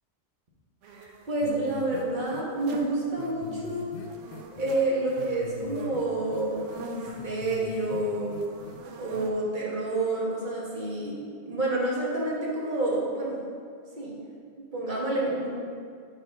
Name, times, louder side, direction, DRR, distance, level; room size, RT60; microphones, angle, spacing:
sound 1, 0.8-9.3, right 3 dB, 80° right, 0.9 m, -47 dB
voice 1, 0.9-3.9 4.6-8.4 9.0-11.1 11.4-13.4 14.0-14.2 14.6-15.5, right 2 dB, 40° right, -4 dB, 1.4 m, -29 dB
sound 2, 1.4-2.0 2.3-2.4 2.7-2.8 3.2-4.8 5.2-6.0 6.3-8.0 8.3-8.8 9.1-9.2, left 4 dB, 85° left, 0.9 m, -41 dB
6.7 x 5.7 x 3.5 m, 2.1 s
omnidirectional pair, 1.2 m